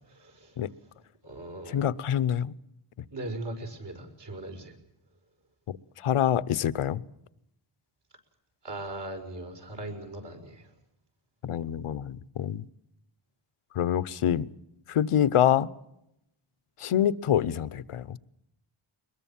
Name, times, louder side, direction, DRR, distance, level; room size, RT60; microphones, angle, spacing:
voice 1, 0.2-0.5 1.2-1.9 3.1-4.7 8.6-10.6, right 1 dB, 55° right, 5.7 m, -39 dB
voice 2, 1.7-2.5 6.0-7.0 11.4-12.6 13.7-14.5 14.9-15.7 16.8-18.2, left 10 dB, 85° left, 0.9 m, -26 dB
22.5 x 21.5 x 7.2 m
wide cardioid pair, 130°, 50 cm